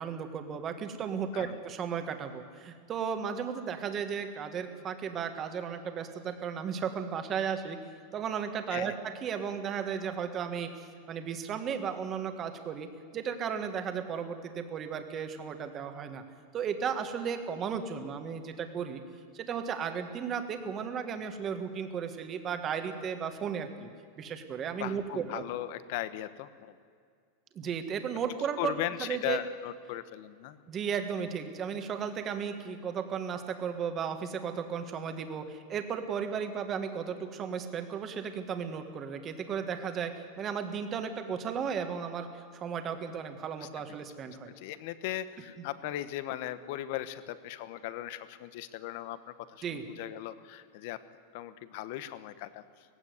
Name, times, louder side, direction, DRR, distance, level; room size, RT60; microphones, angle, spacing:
voice 1, 0.0-7.8 8.1-12.9 13.1-16.2 16.5-19.0 19.3-23.9 24.2-25.4 27.5-29.4 30.7-44.5 49.6-49.8, right 7 dB, 25° right, 7 dB, 1.7 m, -35 dB
voice 2, 24.8-26.7 28.6-30.6 43.6-43.7 44.6-51.0 51.3-52.6, left 14 dB, 55° left, 14 dB, 1.1 m, -38 dB
18.0 x 16.0 x 9.6 m, 2.1 s
supercardioid pair, 160°, 0 cm